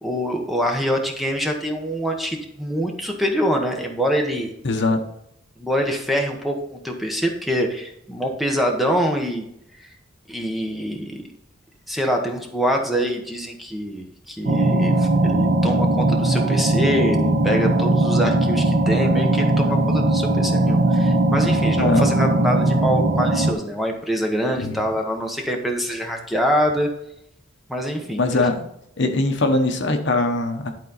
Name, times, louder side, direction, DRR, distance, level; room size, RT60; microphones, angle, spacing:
voice 1, 0.0-4.5 5.6-9.4 9.8-9.9 10.3-11.2 11.9-26.9 27.7-28.2, equal, ahead, 2 dB, 1.0 m, -25 dB
voice 2, 4.6-5.0 21.8-22.1 24.6-24.8 28.2-28.6 29.0-30.7, left 2 dB, 65° left, 6 dB, 1.0 m, -21 dB
sound 1, 14.5-23.5, right 2 dB, 50° right, 0.9 m, -19 dB
11.5 x 4.1 x 3.9 m, 0.78 s
head